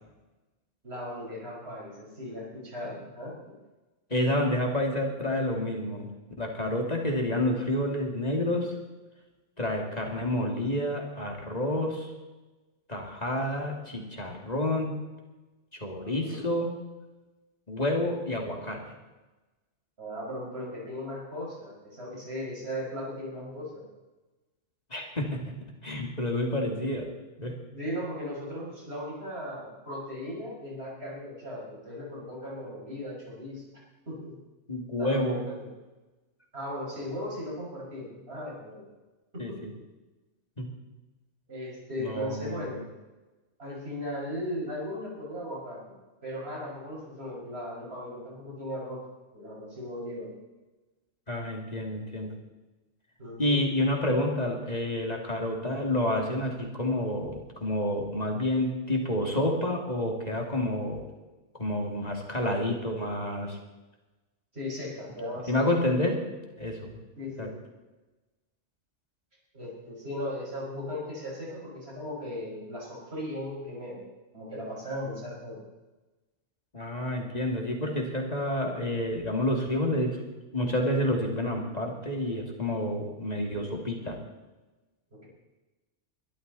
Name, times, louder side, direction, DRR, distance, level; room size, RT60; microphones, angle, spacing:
voice 1, 0.8-3.6 16.0-16.5 20.0-23.8 27.4-33.6 34.1-34.3 35.0-35.7 36.5-38.9 39.3-39.7 41.5-42.8 43.6-49.0 49.3-50.3 53.2-53.6 64.5-65.6 67.2-67.5 69.5-74.1 74.3-75.6, equal, 55° right, -4 dB, 6.1 m, -37 dB
voice 2, 4.1-6.1 6.4-8.7 9.6-12.1 12.9-14.9 15.8-16.7 17.7-18.8 24.9-25.4 25.8-27.1 27.4-27.5 34.7-35.4 39.4-39.7 40.6-40.7 42.0-42.8 51.3-52.3 53.4-61.0 61.6-63.6 65.5-66.2 66.6-66.9 67.4-67.5 76.7-80.2 80.5-84.2, left 1 dB, 30° left, 1 dB, 2.7 m, -29 dB
21.5 x 12.5 x 4.1 m, 1.1 s
omnidirectional pair, 1.3 m